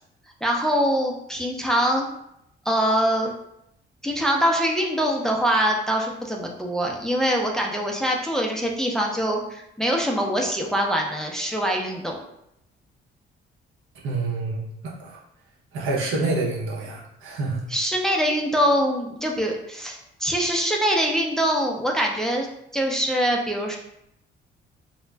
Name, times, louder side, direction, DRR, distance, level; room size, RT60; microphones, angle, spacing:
voice 1, 0.4-2.1 2.7-3.3 4.0-12.2 17.7-22.5 22.7-23.8, equal, 5° left, 0 dB, 0.4 m, -23 dB
voice 2, 14.0-15.2 15.7-17.7, right 3 dB, 85° right, -3 dB, 0.8 m, -27 dB
2.4 x 2.1 x 3.1 m, 0.79 s
cardioid pair, 90°, 20 cm